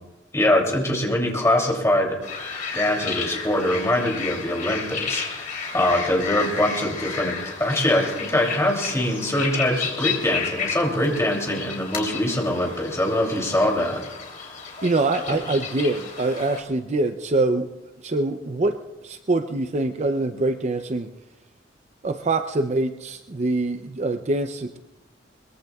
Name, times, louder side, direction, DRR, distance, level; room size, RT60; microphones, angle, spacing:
voice 1, 0.3-2.2 2.7-5.5 5.7-14.0, left 1 dB, 15° left, 0 dB, 2.9 m, -23 dB
sound 1, 2.2-16.6, left 5 dB, 45° left, 3.1 m, -32 dB
voice 2, 14.8-17.7 18.0-18.8 19.0-21.1 22.0-24.8, right 2 dB, 35° right, 8 dB, 0.5 m, -24 dB
22.0 x 21.5 x 2.4 m, 0.97 s
head